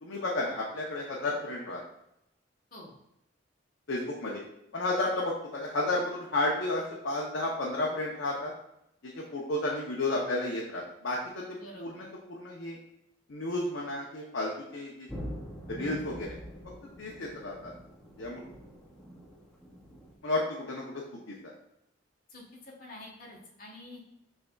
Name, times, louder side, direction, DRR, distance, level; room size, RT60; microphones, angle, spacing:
voice 1, 0.0-1.8 3.9-4.4 4.7-8.5 9.0-12.8 13.3-15.1 15.7-16.4 17.0-17.7 18.2-18.4 20.2-21.5, left 2 dB, 70° left, -3 dB, 0.7 m, -32 dB
voice 2, 11.5-12.0 22.3-24.0, left 1 dB, 45° left, -3 dB, 1.3 m, -47 dB
sound 1, 15.1-20.1, equal, 5° left, 0.6 m, -44 dB
6.3 x 3.4 x 2.3 m, 0.82 s
head